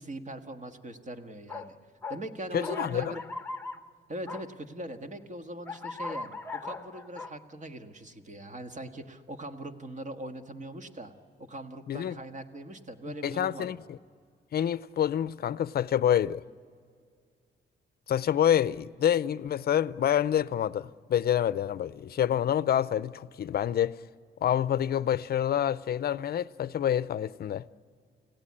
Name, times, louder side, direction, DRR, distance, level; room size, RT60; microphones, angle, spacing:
voice 1, 0.0-1.8 2.1-3.2 4.1-11.1 11.4-13.7, right 1 dB, 40° right, 1.6 m, -41 dB
sound 1, 1.5-1.7 2.0-2.2 2.6-3.8 4.3-4.4 5.7-7.3, left 3 dB, 10° left, 1.1 m, -38 dB
voice 2, 2.5-3.1 11.9-12.2 13.2-13.8 14.5-16.4 18.1-24.0 24.4-27.6, left 10 dB, 55° left, 0.5 m, -27 dB
29.5 x 17.0 x 8.7 m
cardioid pair, 125°, 19 cm